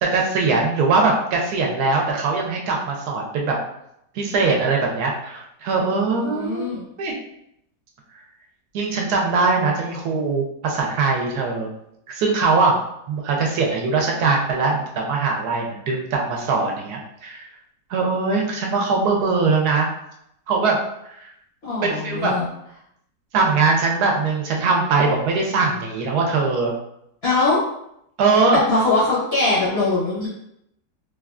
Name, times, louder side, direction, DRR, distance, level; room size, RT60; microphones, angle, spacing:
voice 1, 0.0-3.6 4.1-6.7 7.0-7.1 8.7-11.7 12.1-12.8 13.1-17.4 17.9-19.9 20.5-20.8 21.1-21.3 21.8-22.3 23.3-26.7 28.2-28.6, right 4 dB, 75° right, 0 dB, 1.1 m, -21 dB
voice 2, 6.1-6.8 21.6-22.5 27.2-27.6 28.5-30.3, left 2 dB, 55° left, -8 dB, 0.7 m, -21 dB
3.2 x 2.2 x 2.4 m, 0.78 s
omnidirectional pair, 1.8 m